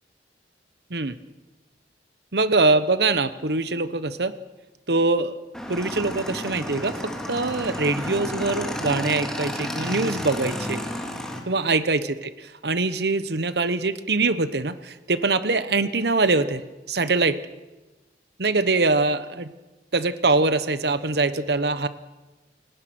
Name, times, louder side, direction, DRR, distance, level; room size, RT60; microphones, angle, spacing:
voice 1, 2.3-4.3 4.9-5.4 5.7-10.8 11.5-17.4 18.4-19.5 19.9-21.9, right 3 dB, 65° right, 13 dB, 1.1 m, -23 dB
Motorcycle / Engine, 5.5-11.4, left 1 dB, 5° left, 2.7 m, -31 dB
29.0 x 18.0 x 6.2 m, 1.2 s
head